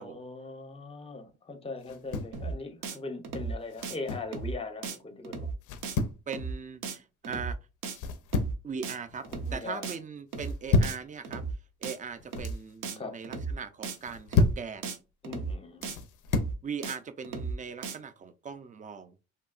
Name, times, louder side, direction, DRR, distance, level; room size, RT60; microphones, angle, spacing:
voice 1, 0.0-5.5 9.3-9.9 13.0-13.2 15.2-15.9, left 3 dB, 20° left, 0.6 m, -40 dB
sound 1, 1.8-2.4 3.7-4.3 5.6-6.2 7.9-8.7 9.0-9.5 10.4-11.0 12.1-12.6 13.9-14.7 15.8-16.6, left 3 dB, 85° left, 0.5 m, -29 dB
sound 2, 2.3-2.5 2.8-3.0 3.2-3.5 3.8-3.9 4.3-4.5 4.8-5.0 5.2-5.5 5.8-6.0 6.3-6.5 6.8-7.0 7.2-7.5 7.8-8.0 8.3-8.5 8.8-8.9 9.2-9.5 9.8-10.0 10.3-10.5 10.8-11.0 11.2-11.5 11.8-12.0 12.3-12.5 12.8-13.0 13.2-13.5 13.8-14.0 14.3-14.5 14.8-15.0 15.2-15.5 15.8-15.9 16.3-16.5 16.8-17.0 17.2-17.5 17.8-17.9, right 4 dB, 85° right, 0.6 m, -35 dB
voice 2, 6.3-7.6 8.6-9.2 9.5-14.9 16.6-19.2, right 6 dB, 25° right, 0.4 m, -40 dB
2.8 x 2.2 x 2.3 m
cardioid pair, 90°, 30 cm